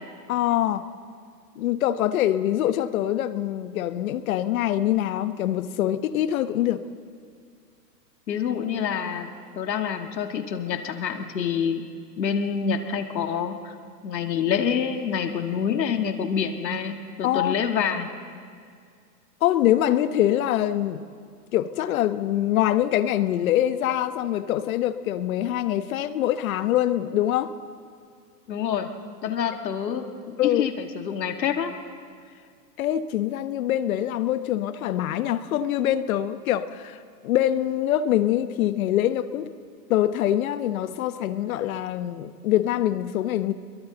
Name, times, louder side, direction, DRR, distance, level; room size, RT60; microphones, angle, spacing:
voice 1, 0.3-0.8 1.6-6.8 17.2-17.5 19.4-21.0 21.5-27.5 30.4-30.6 32.8-37.0 37.2-39.5 39.9-43.5, left 12 dB, 55° left, 12 dB, 1.1 m, -24 dB
voice 2, 8.3-9.3 9.6-11.8 12.2-13.7 14.0-18.1 28.5-28.9 29.2-30.1 30.4-31.7, left 7 dB, 85° left, 5 dB, 2.0 m, -27 dB
30.0 x 22.5 x 4.0 m, 2.2 s
hypercardioid pair, 140°, 49 cm